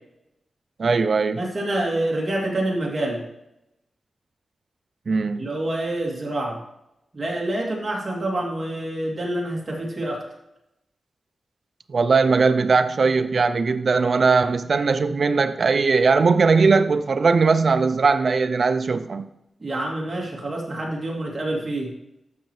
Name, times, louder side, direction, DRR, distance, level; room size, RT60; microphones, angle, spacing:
voice 1, 0.8-1.4 5.1-5.4 11.9-19.3, right 4 dB, 50° right, 9 dB, 0.4 m, -19 dB
voice 2, 1.3-3.2 5.3-6.6 7.1-10.2 19.6-21.9, right 1 dB, 30° right, -2 dB, 2.4 m, -27 dB
12.0 x 6.3 x 3.1 m, 0.87 s
wide cardioid pair, 140°, 0 cm